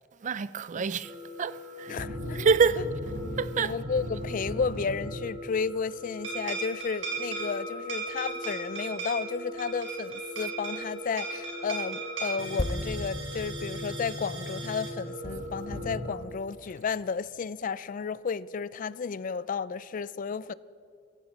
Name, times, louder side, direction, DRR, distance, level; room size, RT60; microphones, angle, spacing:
voice 1, 0.2-1.1 1.4-1.9 2.3-2.8 3.4-3.7, right 6 dB, 40° right, 0.4 m, -26 dB
sound 1, 1.0-16.0, left 2 dB, 5° right, 2.1 m, -43 dB
voice 2, 1.9-2.8 3.6-20.5, left 5 dB, 45° left, 0.4 m, -33 dB
sound 2, 1.9-5.5 6.2-16.2, right 2 dB, 80° right, 4.2 m, -37 dB
sound 3, 12.6-16.2 16.5-16.7, left 1 dB, 20° left, 0.8 m, -38 dB
16.5 x 14.5 x 4.1 m
head